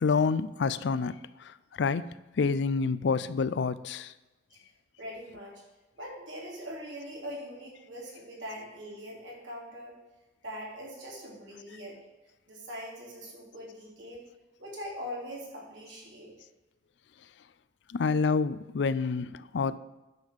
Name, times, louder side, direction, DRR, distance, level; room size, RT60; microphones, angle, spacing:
voice 1, 0.0-1.1 1.4-4.1 17.9-19.8, left 5 dB, 65° left, 16 dB, 0.4 m, -28 dB
voice 2, 5.0-5.6 6.0-10.0 10.4-12.0 12.5-14.2 14.6-16.3, equal, 80° right, -3 dB, 3.2 m, -42 dB
9.4 x 5.5 x 6.5 m, 1.1 s
head